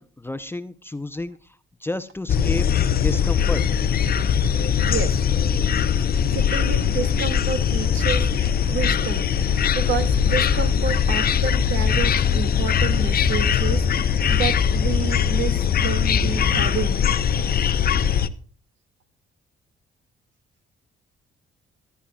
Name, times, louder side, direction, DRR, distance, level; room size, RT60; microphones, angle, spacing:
voice 1, 0.0-3.6, left 2 dB, 10° left, 11 dB, 0.7 m, -31 dB
sound 1, 2.3-18.3, left 7 dB, 50° left, 0.8 m, -21 dB
voice 2, 4.9-5.2 6.3-17.0, right 6 dB, 70° right, 6 dB, 2.2 m, -30 dB
22.0 x 9.6 x 2.4 m, 0.42 s
cardioid pair, 90°, 20 cm